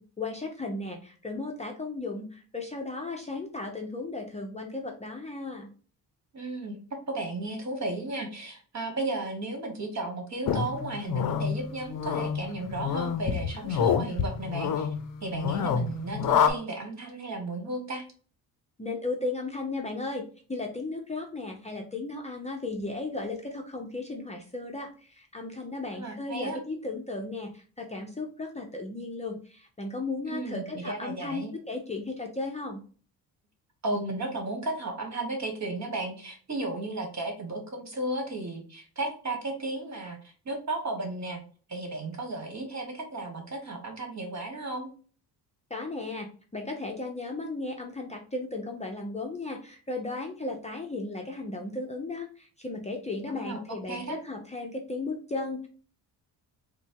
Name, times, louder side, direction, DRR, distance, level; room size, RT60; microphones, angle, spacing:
voice 1, 0.2-5.7 18.8-32.8 45.7-55.7, left 2 dB, 15° left, 1 dB, 0.7 m, -35 dB
voice 2, 6.3-14.9 15.2-18.0 25.9-26.6 30.3-31.5 33.8-41.4 41.7-44.9 53.3-53.6 53.9-54.2, right 2 dB, 40° right, 3 dB, 1.6 m, -34 dB
sound 1, 10.5-16.5, left 7 dB, 55° left, 0.6 m, -28 dB
4.1 x 2.2 x 4.4 m, 0.41 s
cardioid pair, 85°, 41 cm